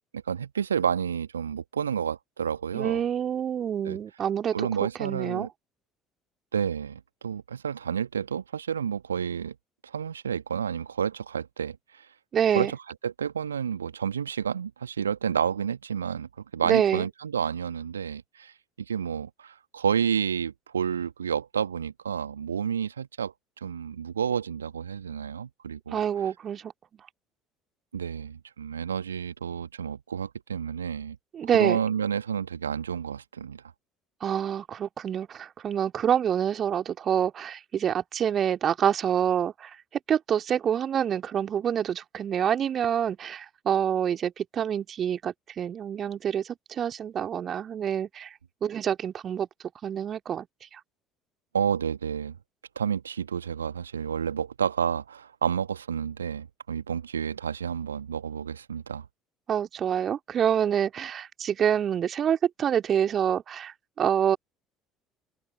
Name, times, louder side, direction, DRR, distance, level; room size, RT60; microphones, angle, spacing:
voice 1, 0.1-3.1 3.8-4.0 4.5-5.5 6.5-9.6 9.8-12.1 12.5-23.3 23.6-26.0 27.9-31.2 31.5-33.6 51.5-52.4 52.8-59.1, right 7 dB, 80° right, 1.8 m, -30 dB
voice 2, 2.7-4.6 5.0-5.5 12.3-12.7 16.6-17.0 25.9-26.7 31.3-31.8 34.2-39.7 40.1-48.3 48.6-49.5 49.8-50.5 50.7-50.8 59.5-64.4, right 9 dB, 40° right, 2.5 m, -27 dB
open air
figure-of-eight pair, 55°, 0 cm